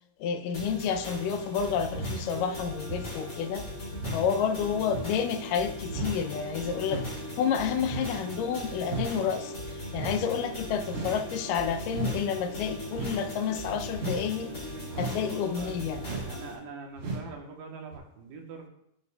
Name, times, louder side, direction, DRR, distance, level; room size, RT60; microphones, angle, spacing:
voice 1, 0.2-3.6 4.1-7.0 7.4-9.5 9.9-14.5 15.0-16.0, left 7 dB, 80° left, 9 dB, 2.2 m, -30 dB
sound 1, 0.5-16.5, left 1 dB, 30° left, 2.2 m, -39 dB
sound 2, 1.9-2.2 2.9-3.2 3.9-4.2 4.9-5.1 5.9-6.2 6.9-7.2 7.8-8.1 8.8-9.1 9.9-10.2 10.9-11.2 11.9-12.2 12.9-13.2 13.9-14.2 14.9-15.2 16.0-16.4 17.0-17.3 17.9-18.0, right 2 dB, 55° right, 3.0 m, -35 dB
sound 3, 5.6-16.1, right 1 dB, 35° right, 2.1 m, -48 dB
voice 2, 14.9-18.7, right 4 dB, 80° right, 2 dB, 2.7 m, -44 dB
10.5 x 8.2 x 2.3 m, 0.75 s
omnidirectional pair, 3.9 m